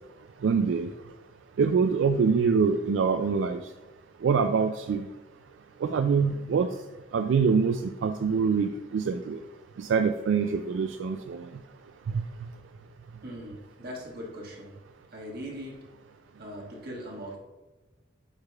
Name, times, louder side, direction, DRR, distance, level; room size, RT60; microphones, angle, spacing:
voice 1, 0.4-0.9 1.6-3.6 4.2-5.1 5.8-6.7 7.1-9.4 9.8-11.5 12.1-12.2, right 5 dB, 75° right, 8 dB, 0.3 m, -25 dB
voice 2, 13.2-14.7 15.1-15.8 16.4-17.4, equal, 55° right, -3 dB, 1.6 m, -40 dB
8.7 x 4.9 x 2.3 m, 1.2 s
head